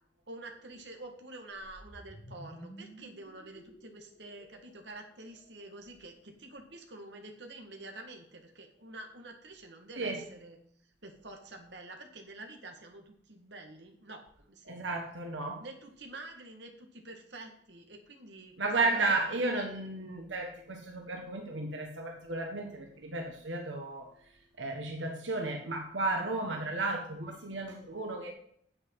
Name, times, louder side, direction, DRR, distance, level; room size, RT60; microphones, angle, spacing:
voice 1, 0.3-10.6 11.0-15.0 15.6-18.5 18.8-19.2, right 2 dB, 65° right, 3 dB, 1.9 m, -48 dB
sound 1, 1.6-5.8, equal, 45° left, 5.0 m, -52 dB
voice 2, 14.7-15.6 18.6-24.1 24.6-28.3, right 2 dB, 90° right, 2 dB, 1.5 m, -33 dB
9.6 x 8.1 x 4.8 m, 0.67 s
head